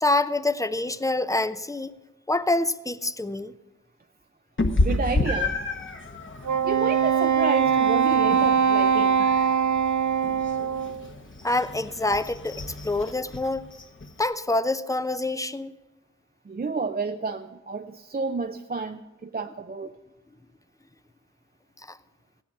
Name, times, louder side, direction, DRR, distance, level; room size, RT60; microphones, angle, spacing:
voice 1, 0.0-1.9 2.3-3.5 11.4-13.6 14.2-15.7 21.9-22.0, left 2 dB, 10° left, 13 dB, 0.6 m, -26 dB
Meow, 4.6-14.2, left 2 dB, 40° left, 1.2 m, -31 dB
voice 2, 4.8-5.6 6.6-9.3 16.5-19.9, right 4 dB, 30° right, 6 dB, 0.5 m, -30 dB
Wind instrument woodwind instrument, 6.4-11.0, right 7 dB, 80° right, 0.5 m, -22 dB
15.5 x 10.5 x 5.4 m, 1.1 s
cardioid pair, 50°, 29 cm